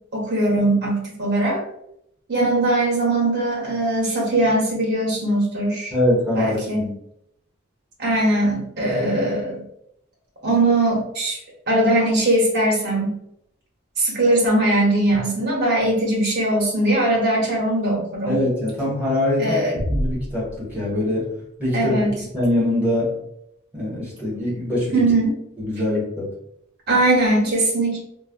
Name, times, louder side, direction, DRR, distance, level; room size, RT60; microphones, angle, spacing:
voice 1, 0.1-1.6 2.3-5.9 6.3-6.8 8.0-9.6 10.4-11.4 11.7-13.1 14.0-18.4 19.4-19.8 21.7-22.1 24.9-25.3 26.9-28.0, right 1 dB, 50° right, -4 dB, 0.8 m, -20 dB
voice 2, 5.9-6.9 18.3-19.6 19.9-21.3 21.6-22.0 22.3-23.1 23.7-24.9 25.6-26.3, left 1 dB, 10° right, -8 dB, 1.3 m, -23 dB
sound 1, 19.7-21.5, equal, 50° left, 0.7 m, -29 dB
3.3 x 2.1 x 2.3 m, 0.75 s
head